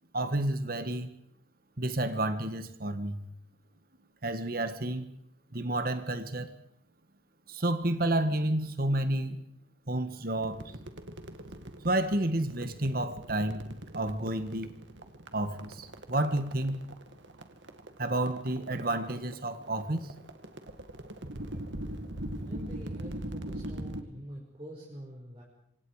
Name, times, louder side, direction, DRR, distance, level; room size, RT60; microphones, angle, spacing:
voice 1, 0.1-1.1 1.8-3.2 4.2-5.0 5.5-6.5 7.5-9.4 9.9-10.6 11.8-13.7 13.9-14.7 15.3-16.8 18.0-20.1, right 1 dB, 50° right, 1.6 m, -30 dB
sound 1, 10.3-24.0, right 1 dB, 75° right, 2.1 m, -42 dB
voice 2, 22.4-25.4, equal, 30° right, 5.7 m, -46 dB
27.5 x 25.5 x 5.0 m
head